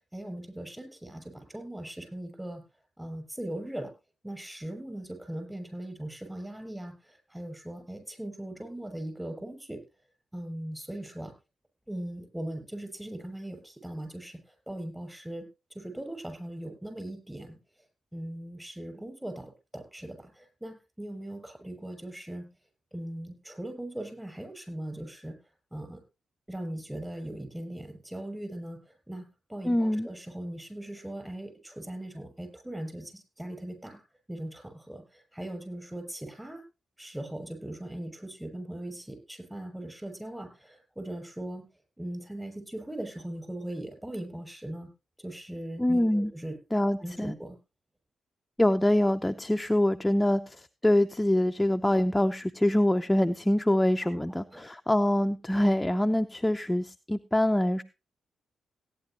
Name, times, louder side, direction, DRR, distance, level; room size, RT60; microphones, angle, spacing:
voice 1, 0.1-2.6 3.0-3.9 4.2-9.8 10.3-11.3 11.9-15.4 15.7-17.6 18.1-22.5 22.9-25.4 25.7-26.0 26.5-34.0 34.3-36.6 37.0-41.7 42.0-44.9 45.2-46.6 47.0-47.6 54.0-54.7, right 1 dB, 10° right, 7 dB, 6.7 m, -39 dB
voice 2, 29.6-30.1 45.8-46.3 46.7-47.3 48.6-57.8, left 1 dB, 10° left, 7 dB, 0.6 m, -25 dB
17.5 x 9.7 x 2.9 m, 0.27 s
supercardioid pair, 45°, 0 cm